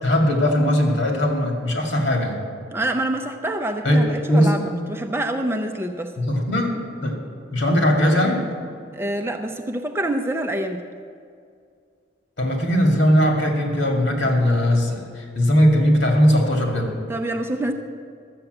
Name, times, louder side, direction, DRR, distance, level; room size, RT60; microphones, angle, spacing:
voice 1, 0.0-2.4 3.8-4.6 6.2-6.8 7.0-7.2 7.5-8.4 12.4-16.9, equal, 70° left, 1 dB, 2.2 m, -19 dB
voice 2, 2.7-6.1 8.9-10.8 17.1-17.7, right 1 dB, 10° right, 5 dB, 0.5 m, -26 dB
12.5 x 7.4 x 7.9 m, 2.3 s
head